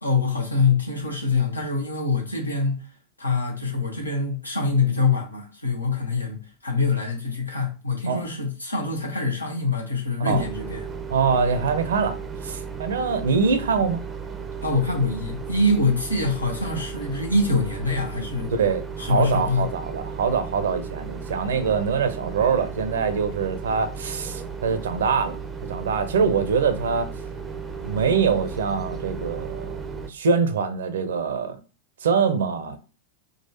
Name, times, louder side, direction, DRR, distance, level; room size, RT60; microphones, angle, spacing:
voice 1, 0.0-2.9 3.2-10.8 14.6-18.5 19.0-19.7, left 3 dB, 80° left, 0.9 m, -24 dB
sound 1, 10.3-30.1, right 5 dB, 15° right, 0.5 m, -35 dB
voice 2, 11.1-12.2 12.4-14.0 18.5-25.4 25.7-27.1 27.8-29.8 30.1-31.6 32.0-32.8, right 5 dB, 65° right, 0.6 m, -24 dB
3.8 x 2.4 x 2.8 m
figure-of-eight pair, 90°, 0 cm